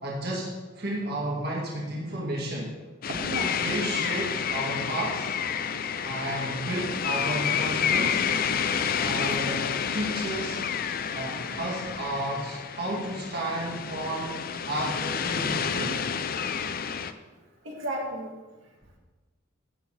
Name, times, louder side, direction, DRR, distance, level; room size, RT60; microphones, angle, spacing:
voice 1, 0.0-2.7 3.6-5.4 6.0-8.4 8.9-9.6 9.9-10.6 11.1-14.4 14.7-16.0, right 1 dB, 50° right, -4 dB, 2.0 m, -32 dB
sound 1, 3.0-17.1, left 7 dB, 45° left, 0.5 m, -29 dB
voice 2, 3.1-3.5 9.4-9.5 11.3-12.0 17.6-18.3, right 1 dB, 70° right, -2 dB, 2.1 m, -35 dB
13.0 x 8.9 x 3.4 m, 1.3 s
head